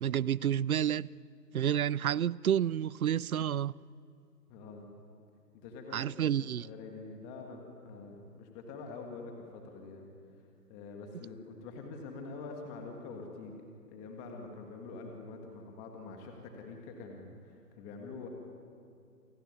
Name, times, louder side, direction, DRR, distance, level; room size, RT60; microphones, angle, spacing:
voice 1, 0.0-1.1 1.5-3.7 5.9-6.6, right 10 dB, 60° right, 0.6 m, -29 dB
voice 2, 4.5-4.9 5.5-10.1 10.7-13.6 13.9-18.3, left 3 dB, 15° left, 1.7 m, -45 dB
28.0 x 18.0 x 9.6 m
hypercardioid pair, 155°, 48 cm